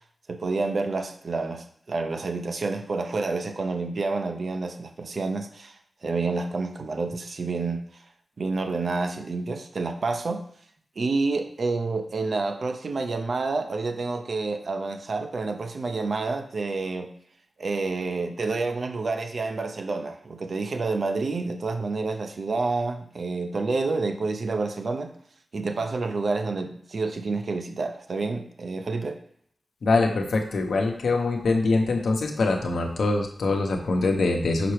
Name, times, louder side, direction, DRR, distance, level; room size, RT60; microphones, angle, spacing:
voice 1, 0.3-5.7 6.0-7.8 8.4-10.4 11.0-17.1 17.6-25.1 25.5-29.2, right 3 dB, 50° right, 6 dB, 0.6 m, -28 dB
voice 2, 29.8-34.7, left 3 dB, 80° left, 3 dB, 0.9 m, -24 dB
5.9 x 3.3 x 5.8 m, 0.63 s
wide cardioid pair, 170°, 0 cm